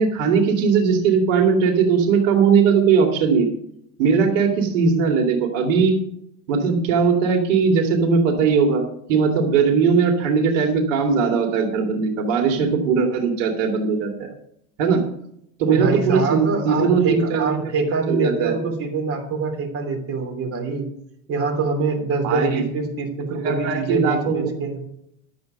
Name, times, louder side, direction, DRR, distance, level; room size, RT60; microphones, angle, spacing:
voice 1, 0.0-3.5 4.0-6.0 6.5-8.8 9.1-14.3 14.8-15.0 15.6-17.5 18.1-18.5 22.2-22.6 23.4-24.5, right 5 dB, 80° right, 2 dB, 2.5 m, -19 dB
voice 2, 15.7-20.9 21.3-24.8, right 4 dB, 35° right, 1 dB, 3.1 m, -24 dB
12.0 x 7.9 x 5.3 m, 0.73 s
supercardioid pair, 165°, 38 cm